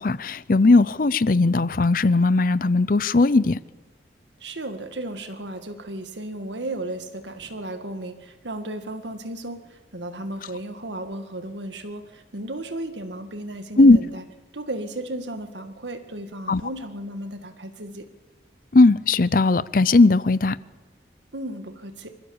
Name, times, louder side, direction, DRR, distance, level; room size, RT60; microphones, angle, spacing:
voice 1, 0.0-3.6 13.8-14.0 16.5-16.6 18.7-20.6, left 3 dB, 50° left, 0.6 m, -17 dB
voice 2, 4.4-14.2 14.5-18.1 21.3-22.2, right 1 dB, 85° right, 2.0 m, -34 dB
26.0 x 15.0 x 7.2 m
head